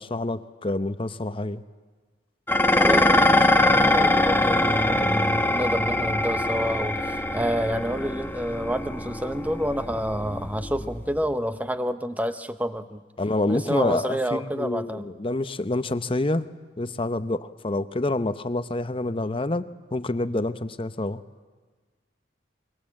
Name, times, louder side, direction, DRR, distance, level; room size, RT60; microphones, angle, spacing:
voice 1, 0.0-1.6 13.2-16.5 16.8-21.2, left 2 dB, 30° left, 12 dB, 0.8 m, -27 dB
Dishes pots and pans, 2.5-11.3, left 1 dB, 10° left, 1.1 m, -23 dB
voice 2, 2.8-13.0 13.5-15.1, equal, 10° right, 10 dB, 0.9 m, -28 dB
24.5 x 23.0 x 7.7 m, 1.4 s
head